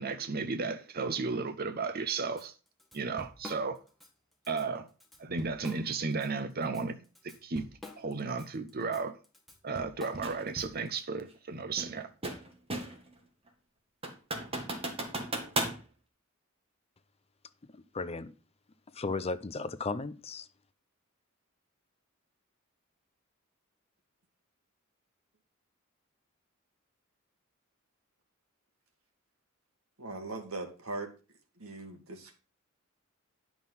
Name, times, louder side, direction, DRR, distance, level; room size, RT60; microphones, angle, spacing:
voice 1, 0.0-2.5 2.9-3.8 4.5-4.9 5.2-7.0 7.2-7.7 8.0-9.2 9.6-12.1, right 4 dB, 45° right, 0.8 m, -34 dB
Drum kit / Drum, 2.4-2.5 2.8-4.1 4.5-4.6 5.0-6.3 6.6-11.0, left 1 dB, ahead, 1.7 m, -47 dB
sound 1, 10.2-10.4 11.8-13.1 13.5-13.6 14.0-15.8, right 2 dB, 30° right, 2.0 m, -35 dB
voice 2, 17.7-18.3 18.9-20.5, left 3 dB, 30° left, 0.6 m, -35 dB
voice 3, 30.0-31.1 31.6-32.4, right 2 dB, 85° right, 1.9 m, -40 dB
10.5 x 6.1 x 5.4 m
head